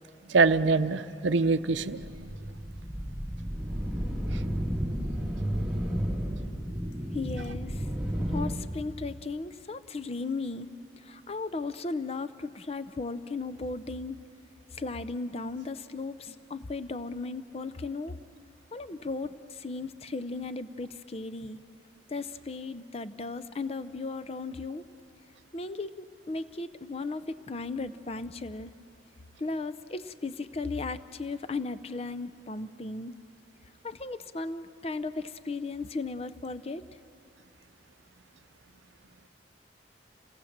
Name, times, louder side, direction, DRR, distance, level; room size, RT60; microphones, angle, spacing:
voice 1, 0.3-2.3, right 4 dB, 80° right, 12 dB, 0.6 m, -24 dB
sound 1, 1.7-8.5, equal, 5° right, 1.5 m, -32 dB
voice 2, 7.1-7.9 8.3-10.7 11.0-14.2 14.7-18.1 18.7-21.6 22.1-24.8 25.5-28.7 29.4-33.1 33.8-36.8, left 3 dB, 35° left, 12 dB, 0.6 m, -36 dB
27.5 x 18.0 x 7.3 m, 2.5 s
head